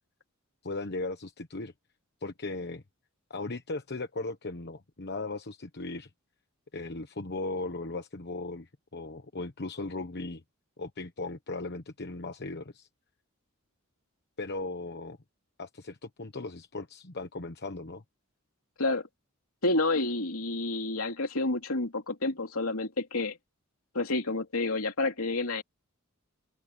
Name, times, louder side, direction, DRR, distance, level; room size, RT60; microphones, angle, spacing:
voice 1, 0.6-1.7 2.2-2.8 3.3-6.1 6.7-10.4 10.8-12.9 14.4-15.2 15.6-18.0, left 2 dB, 50° left, 1.1 m, -37 dB
voice 2, 19.6-23.4 24.0-25.6, left 2 dB, 70° left, 3.4 m, -29 dB
open air
head